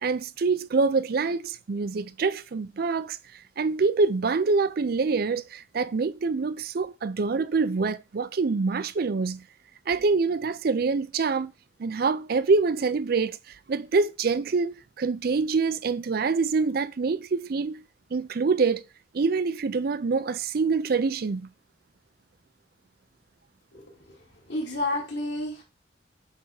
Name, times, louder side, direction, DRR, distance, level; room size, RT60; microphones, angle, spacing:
voice 1, 0.0-3.2 3.6-9.4 9.9-11.5 11.8-17.8 18.1-18.8 19.1-21.5, right 4 dB, 55° right, 0.4 m, -25 dB
voice 2, 23.7-25.6, left 2 dB, 70° left, 3.1 m, -31 dB
8.1 x 3.6 x 4.7 m
head